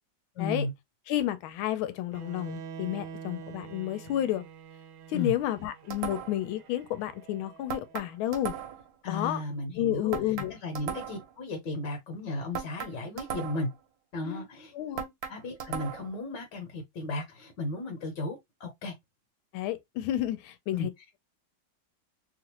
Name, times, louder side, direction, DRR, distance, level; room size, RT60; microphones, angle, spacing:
voice 1, 0.3-0.7 5.1-5.3 9.0-13.7 14.1-14.7 15.3-18.9 20.7-20.9, left 2 dB, 65° left, 1.4 m, -35 dB
voice 2, 1.1-4.4 5.1-8.5 9.1-9.4 9.8-10.5 14.2-14.4 14.7-15.1 19.5-20.9, left 13 dB, 85° left, 1.4 m, -31 dB
Bowed string instrument, 2.1-8.2, right 7 dB, 85° right, 1.4 m, -46 dB
sound 1, 5.9-6.5 7.7-8.9 10.1-11.3 12.5-13.8 15.0-16.2, right 8 dB, 65° right, 1.0 m, -37 dB
3.4 x 2.4 x 2.9 m
omnidirectional pair, 2.2 m